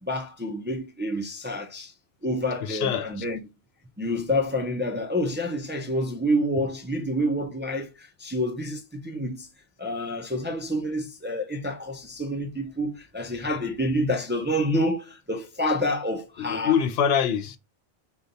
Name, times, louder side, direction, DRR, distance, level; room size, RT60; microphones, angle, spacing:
voice 1, 0.0-1.9 2.2-3.4 4.0-9.5 9.8-16.8, equal, 15° right, 0.4 m, -28 dB
voice 2, 2.6-3.1 16.4-17.6, left 8 dB, 75° left, 0.8 m, -24 dB
5.3 x 2.3 x 3.9 m
omnidirectional pair, 1.0 m